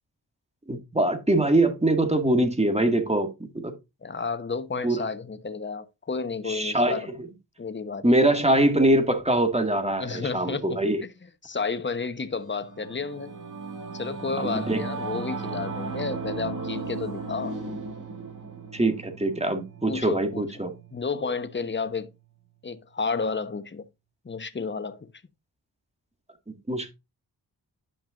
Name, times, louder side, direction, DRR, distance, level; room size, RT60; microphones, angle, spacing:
voice 1, 0.7-3.7 4.8-5.1 6.5-7.0 8.0-11.0 14.4-14.8 18.7-20.7 26.5-26.9, right 1 dB, 15° right, 2.0 m, -23 dB
voice 2, 4.0-7.1 7.6-8.1 10.0-11.1 11.4-13.3 13.9-17.6 19.9-20.4 20.9-22.1 22.6-23.8 24.2-25.1, left 4 dB, 25° left, 1.0 m, -31 dB
Singing / Musical instrument, 12.5-22.2, right 4 dB, 45° right, 2.3 m, -36 dB
10.5 x 5.9 x 2.5 m
cardioid pair, 45°, 41 cm